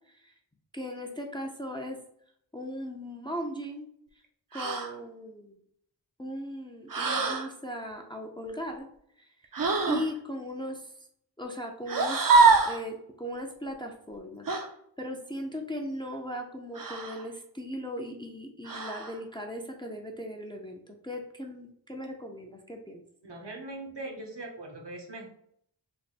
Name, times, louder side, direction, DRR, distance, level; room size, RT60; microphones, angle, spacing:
voice 1, 0.7-2.0 2.5-3.9 4.5-5.6 6.2-8.9 9.2-9.3 9.9-10.9 11.4-12.3 12.6-14.5 15.0-23.0, equal, 10° left, 2 dB, 0.5 m, -38 dB
sound 1, 4.5-4.9 6.9-7.5 9.5-10.1 11.9-12.8 14.5-14.7 16.7-17.2 18.6-19.1, right 4 dB, 50° right, 0.6 m, -24 dB
voice 2, 23.2-25.3, right 2 dB, 65° right, 1 dB, 0.9 m, -40 dB
3.3 x 2.1 x 4.1 m, 0.69 s
wide cardioid pair, 45°, 44 cm